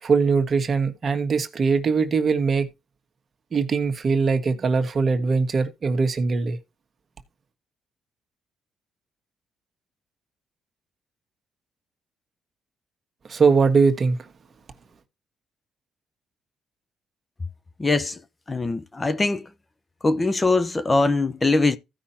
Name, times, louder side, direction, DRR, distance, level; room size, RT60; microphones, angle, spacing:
voice 1, 0.0-2.7 3.5-6.6 13.3-14.3, right 5 dB, 45° right, 1.5 m, -21 dB
voice 2, 17.8-18.2 18.5-19.4 20.0-21.8, left 3 dB, 25° left, 0.9 m, -22 dB
15.5 x 5.6 x 2.8 m
cardioid pair, 90°, 0 cm